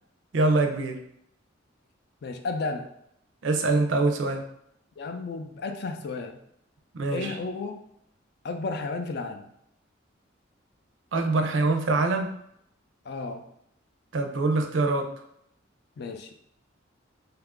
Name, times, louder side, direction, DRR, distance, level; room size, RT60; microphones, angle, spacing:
voice 1, 0.3-1.0 3.4-4.4 6.9-7.3 11.1-12.4 14.1-15.1, right 3 dB, 75° right, 5 dB, 0.5 m, -24 dB
voice 2, 2.2-2.9 5.0-6.4 7.1-7.8 8.4-9.4 13.0-13.4 16.0-16.4, left 3 dB, 55° left, 5 dB, 0.3 m, -33 dB
2.8 x 2.4 x 3.5 m, 0.74 s
head